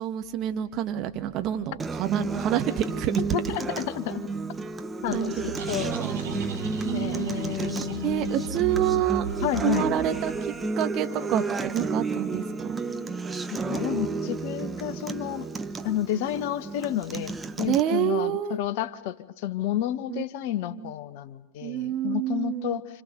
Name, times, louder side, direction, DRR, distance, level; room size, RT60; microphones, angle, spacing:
voice 1, 0.0-3.2 5.1-5.6 6.0-6.2 6.8-7.4 8.0-12.8 17.7-18.6 20.1-20.2 20.7-20.9 21.6-22.8, right 11 dB, 35° right, 7 dB, 1.9 m, -28 dB
Acoustic guitar, 1.8-17.8, right 4 dB, 15° right, 1.2 m, -32 dB
voice 2, 3.3-4.3 5.0-8.3 9.4-9.9 13.5-15.5 15.8-23.0, left 12 dB, 50° left, 14 dB, 1.2 m, -31 dB
sound 1, 5.1-10.6, right 4 dB, 60° right, 3.8 m, -37 dB
30.0 x 27.5 x 6.9 m, 1.0 s
figure-of-eight pair, 90°, 0 cm